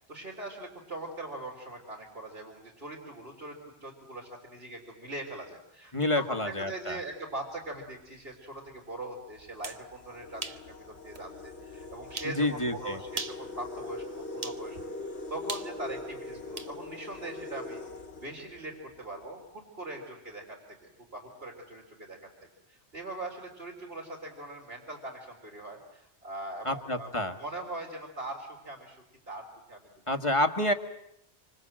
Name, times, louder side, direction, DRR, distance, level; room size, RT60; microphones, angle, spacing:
voice 1, 0.1-17.8 18.2-22.2 22.7-27.1 27.4-29.9, right 2 dB, 60° right, -2 dB, 4.1 m, -41 dB
voice 2, 5.9-7.0 12.4-13.0 26.7-27.4 30.1-30.7, left 1 dB, 25° left, 6 dB, 1.8 m, -28 dB
sound 1, 7.6-7.9 8.7-8.8 9.3-19.0, left 2 dB, 75° left, 2.5 m, -42 dB
sound 2, 9.4-9.8 10.4-10.6 11.1-11.2 12.2-12.4 13.1-13.5 14.4-14.6 15.5-16.7, right 3 dB, 35° right, 1.2 m, -38 dB
27.0 x 25.5 x 7.7 m, 0.78 s
omnidirectional pair, 1.1 m